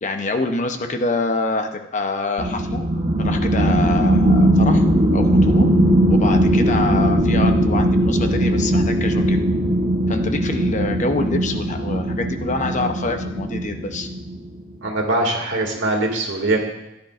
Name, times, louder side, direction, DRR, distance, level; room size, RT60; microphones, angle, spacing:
voice 1, 0.0-2.8 3.2-4.8 5.1-5.7 6.1-9.4 10.1-14.1, left 2 dB, 40° left, 6 dB, 0.7 m, -26 dB
sound 1, 2.4-14.5, right 1 dB, 35° right, 0.9 m, -19 dB
voice 2, 14.8-16.6, right 2 dB, 65° right, 0 dB, 2.2 m, -22 dB
16.0 x 10.5 x 2.5 m, 0.92 s
head